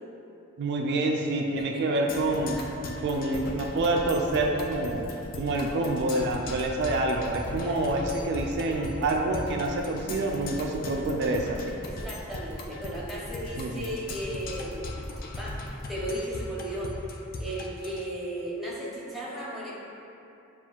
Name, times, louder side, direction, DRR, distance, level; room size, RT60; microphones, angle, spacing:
voice 1, 0.6-2.6 3.0-5.1 5.4-11.6 13.6-13.9, right 2 dB, 55° right, 1 dB, 0.3 m, -27 dB
Percussion, 2.1-18.1, left 2 dB, 45° left, 0.3 m, -39 dB
sound 1, 3.1-15.8, equal, 75° left, 1.2 m, -46 dB
voice 2, 7.6-8.0 11.8-15.0 15.4-15.5 15.9-16.9 17.4-19.7, right 1 dB, ahead, -7 dB, 0.7 m, -35 dB
6.9 x 2.4 x 2.4 m, 2.8 s
head